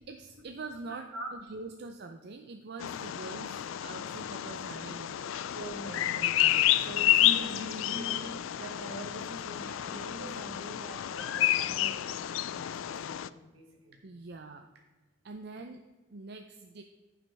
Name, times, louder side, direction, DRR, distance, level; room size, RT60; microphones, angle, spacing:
voice 1, 0.1-5.4 7.0-7.2 14.0-14.7 15.2-15.8 16.1-16.8, right 3 dB, 55° right, 5 dB, 0.5 m, -44 dB
voice 2, 0.9-1.3 5.5-14.0, right 1 dB, 75° right, 1 dB, 1.9 m, -43 dB
Bird vocalization bird call bird song, 2.8-13.3, left 13 dB, 70° left, 0.3 m, -30 dB
14.0 x 6.0 x 3.4 m, 1.2 s
head